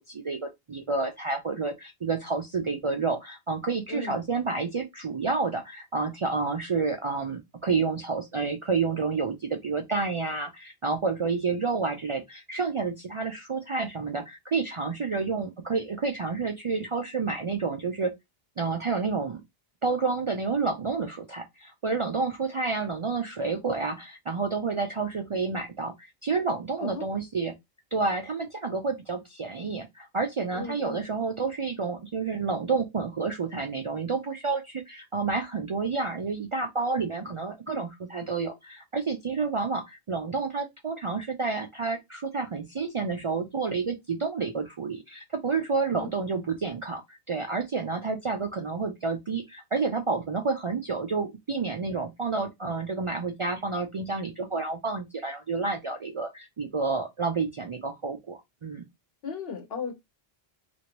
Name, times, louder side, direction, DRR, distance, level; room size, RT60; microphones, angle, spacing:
voice 1, 0.0-18.1 18.6-19.4 19.8-27.5 27.9-58.8, right 4 dB, 55° right, 0.3 m, -29 dB
voice 2, 3.9-4.2 26.8-27.0 30.5-31.1 46.0-46.1 46.3-46.4 59.2-60.0, left 5 dB, 65° left, 1.1 m, -36 dB
2.9 x 2.5 x 2.9 m
omnidirectional pair, 1.1 m